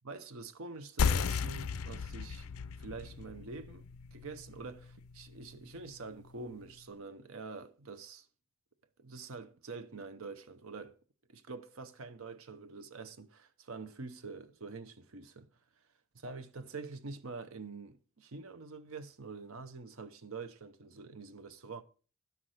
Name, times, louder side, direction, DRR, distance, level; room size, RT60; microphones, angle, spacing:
voice 1, 0.0-2.5 2.8-8.3 9.0-11.0 11.3-15.5 16.1-21.8, right 4 dB, 65° right, 0.8 m, -46 dB
sound 1, 1.0-6.1, left 6 dB, 75° left, 0.5 m, -35 dB
12.0 x 5.9 x 6.3 m
head